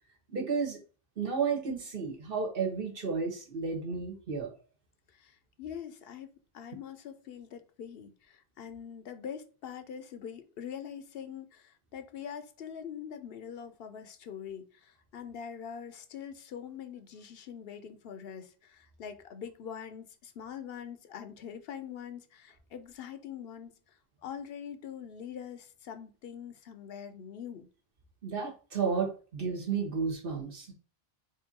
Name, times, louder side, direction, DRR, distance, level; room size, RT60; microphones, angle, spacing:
voice 1, 0.3-0.8 1.2-4.5 28.2-30.7, right 5 dB, 60° right, 1 dB, 1.3 m, -32 dB
voice 2, 5.2-6.3 6.5-23.7 24.2-27.7, left 8 dB, 70° left, 9 dB, 0.8 m, -43 dB
3.7 x 2.5 x 4.1 m, 0.36 s
omnidirectional pair, 1.0 m